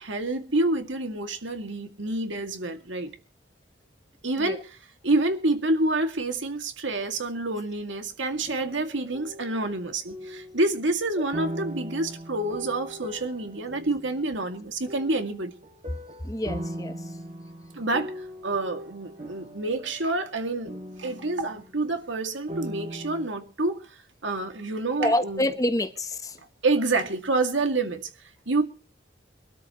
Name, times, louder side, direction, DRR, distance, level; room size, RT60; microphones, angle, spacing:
voice 1, 0.0-3.1 4.2-4.8 5.0-15.5 17.7-20.7 21.0-23.8 24.2-25.6 26.4-28.0 28.5-28.6, right 2 dB, 80° right, 2.3 m, -28 dB
sound 1, 8.3-10.8 11.3-14.5 14.9-22.2 22.5-23.3, equal, 35° right, 2.1 m, -40 dB
voice 2, 16.3-16.9 25.0-26.1, left 1 dB, 20° left, 0.8 m, -26 dB
23.5 x 13.0 x 3.0 m
head